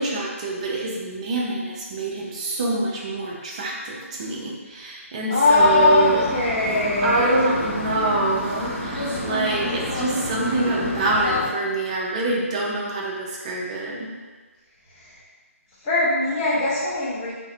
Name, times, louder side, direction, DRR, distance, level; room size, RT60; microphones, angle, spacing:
voice 1, 0.0-6.3 7.0-14.1, right 2 dB, 25° right, -3 dB, 0.4 m, -25 dB
voice 2, 5.3-7.4 15.0-15.1 15.8-17.3, left 2 dB, 20° left, -9 dB, 0.6 m, -20 dB
sound 1, 5.6-11.5, left 1 dB, 50° left, 0.9 m, -29 dB
2.4 x 2.1 x 2.6 m, 1.4 s
figure-of-eight pair, 150°, 8 cm